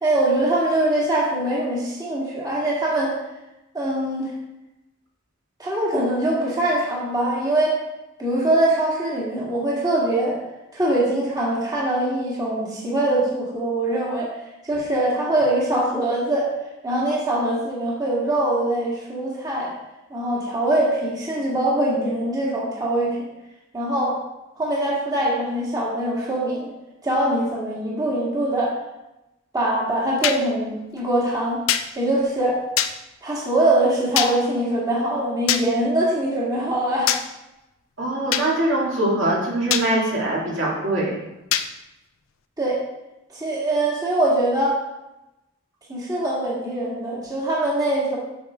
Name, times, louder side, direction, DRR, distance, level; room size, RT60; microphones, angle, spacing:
voice 1, 0.0-3.1 3.7-4.3 5.6-7.7 8.2-10.4 10.7-14.3 14.7-16.5 16.8-19.7 20.1-23.2 23.7-24.2 24.6-26.7 27.0-28.7 29.5-31.6 32.0-32.6 33.2-37.1 42.6-42.8 43.3-44.8 45.9-48.2, right 1 dB, 20° right, -6 dB, 1.9 m, -22 dB
sound 1, 30.2-30.4 31.7-31.9 32.8-32.9 34.2-34.3 35.5-35.6 37.1-37.2 38.3-38.5 39.7-39.9 41.5-41.7, left 10 dB, 90° left, 0.5 m, -21 dB
voice 2, 38.0-41.1, right 1 dB, 65° right, -5 dB, 2.5 m, -22 dB
8.2 x 6.7 x 3.6 m, 0.94 s
head